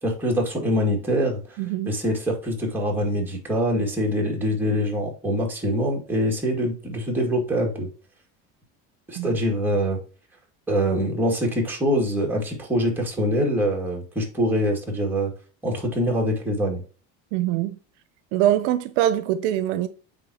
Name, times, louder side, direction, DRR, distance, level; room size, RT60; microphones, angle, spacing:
voice 1, 0.0-1.4 1.9-7.9 9.1-10.0 10.7-15.3 15.6-16.8, equal, 5° right, 2.0 m, -24 dB
voice 2, 1.6-1.9 9.2-9.4 17.3-17.8 18.3-19.9, right 12 dB, 75° right, 0.7 m, -23 dB
9.2 x 3.7 x 2.8 m
cardioid pair, 135°, 34 cm